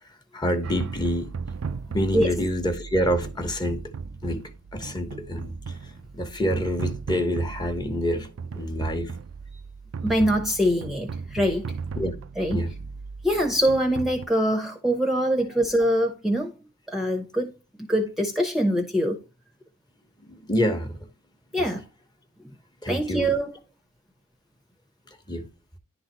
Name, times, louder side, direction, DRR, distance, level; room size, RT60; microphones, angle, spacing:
voice 1, 0.3-1.3 1.9-3.9 4.2-5.5 6.1-8.3 8.5-9.1 12.0-12.1 12.5-12.7 20.3-21.0 21.6-21.7 22.8-23.3 25.3-25.5, equal, 20° left, 1.1 m, -27 dB
sound 1, 0.6-14.3, right 5 dB, 85° right, 0.4 m, -36 dB
voice 2, 10.0-11.7 12.4-12.6 13.2-16.5 16.9-17.5 17.8-19.2 21.5-21.9 22.4-22.5 22.9-23.5, equal, ahead, 0.8 m, -24 dB
11.0 x 3.9 x 3.0 m
head